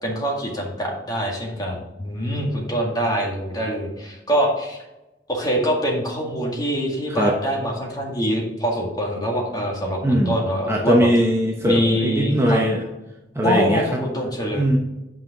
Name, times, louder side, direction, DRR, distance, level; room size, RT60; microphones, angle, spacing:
voice 1, 0.0-4.8 5.3-11.1 11.6-12.6 13.4-14.7, equal, 25° left, -1 dB, 2.0 m, -24 dB
voice 2, 10.0-10.4 10.7-12.8 13.3-14.0 14.5-14.8, equal, 15° right, -1 dB, 0.8 m, -20 dB
8.8 x 5.5 x 3.7 m, 0.99 s
head